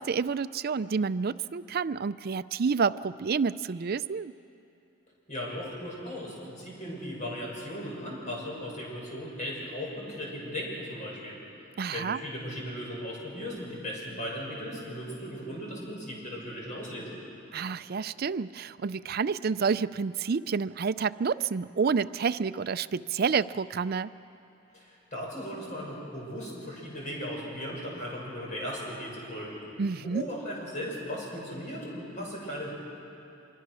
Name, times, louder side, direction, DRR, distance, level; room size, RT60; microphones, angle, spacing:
voice 1, 0.0-4.3 11.8-12.2 17.5-24.1 29.8-30.2, right 5 dB, 50° right, 14 dB, 0.4 m, -29 dB
voice 2, 5.3-11.4 11.9-17.2 24.7-29.6 30.0-32.7, equal, 40° left, -3 dB, 6.6 m, -37 dB
25.5 x 23.5 x 6.3 m, 2.8 s
head